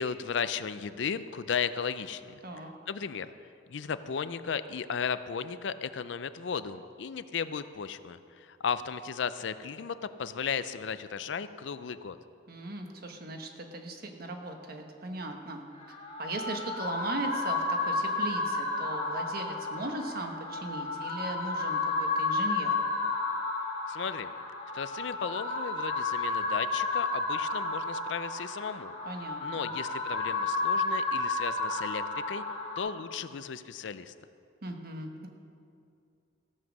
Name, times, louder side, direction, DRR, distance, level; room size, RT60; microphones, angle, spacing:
voice 1, 0.0-3.3 3.7-12.2 23.9-24.3 24.7-28.9 29.4-32.4 32.8-34.1, left 6 dB, 70° left, 13 dB, 0.5 m, -35 dB
voice 2, 12.5-15.7 16.2-22.7 29.0-29.7 34.6-35.3, right 2 dB, 55° right, 3 dB, 1.2 m, -38 dB
sound 1, 15.8-32.8, left 3 dB, 35° left, 1.6 m, -32 dB
15.0 x 7.3 x 6.3 m, 2.5 s
head